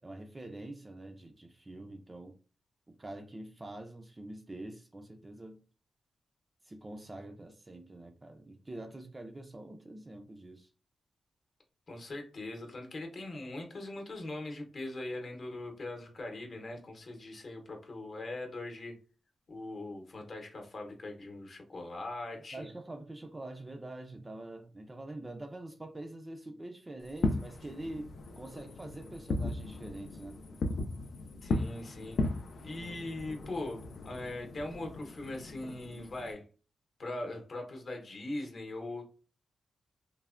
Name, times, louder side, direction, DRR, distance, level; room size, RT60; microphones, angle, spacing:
voice 1, 0.0-2.4 2.9-5.6 6.6-10.7 22.5-30.4, right 1 dB, 20° right, 0.3 m, -45 dB
voice 2, 11.9-19.0 19.5-22.7 31.4-32.2 32.6-36.5 37.0-39.0, left 2 dB, 45° left, 0.7 m, -41 dB
Fireworks, 27.1-36.3, left 2 dB, 60° left, 0.3 m, -37 dB
3.1 x 2.1 x 2.3 m
wide cardioid pair, 145°, 0 cm